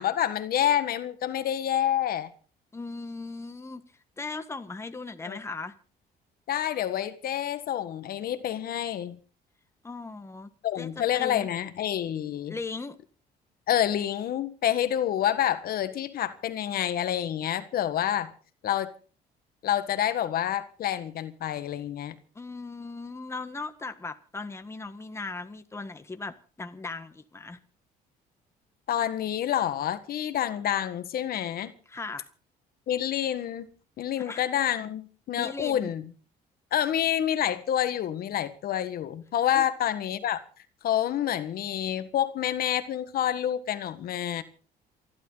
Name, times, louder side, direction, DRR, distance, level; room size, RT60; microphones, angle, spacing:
voice 1, 0.0-2.3 5.3-5.4 6.5-9.2 10.6-12.6 13.7-18.3 18.6-18.9 19.6-22.2 28.9-31.7 32.9-33.7 34.0-36.0 36.7-40.4 40.8-44.4, left 11 dB, 60° left, 1.6 m, -28 dB
voice 2, 2.7-3.8 4.2-5.7 9.8-10.5 10.8-11.5 12.5-13.0 22.3-27.6 31.9-32.3 34.2-34.4 35.3-35.9 39.5-39.7, left 3 dB, 15° left, 1.5 m, -38 dB
28.0 x 11.5 x 4.0 m
cardioid pair, 110°, 17 cm